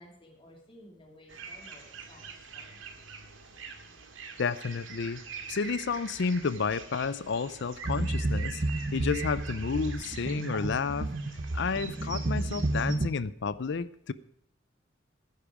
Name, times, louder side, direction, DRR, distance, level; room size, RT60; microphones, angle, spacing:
voice 1, 0.0-2.8, left 1 dB, 30° left, 0 dB, 2.8 m, -55 dB
sound 1, 1.3-13.0, right 5 dB, 80° right, 2.0 m, -45 dB
voice 2, 4.4-5.2 5.5-8.6 8.9-11.1 11.5-14.1, left 5 dB, 65° left, 17 dB, 0.5 m, -31 dB
sound 2, 7.8-13.1, right 2 dB, 45° right, 0.9 m, -32 dB
13.5 x 10.5 x 4.9 m, 0.72 s
head